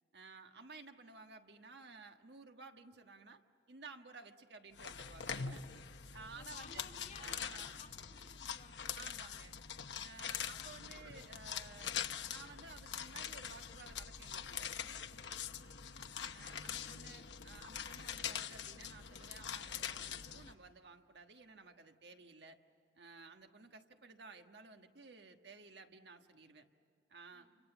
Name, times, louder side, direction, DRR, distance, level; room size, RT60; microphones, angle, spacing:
voice 1, 0.1-3.4 3.7-5.8 6.1-6.9 7.2-7.8 8.9-9.6 10.0-12.0 12.3-14.7 16.3-22.6 22.9-26.7 27.1-27.5, right 4 dB, 75° right, 6 dB, 1.4 m, -55 dB
sound 1, 4.8-20.5, left 8 dB, 90° left, 1.0 m, -44 dB
voice 2, 6.3-8.9 10.6-10.7 16.6-17.2 27.3-27.5, left 4 dB, 40° left, -1 dB, 3.6 m, -58 dB
29.5 x 26.0 x 7.0 m, 2.5 s
head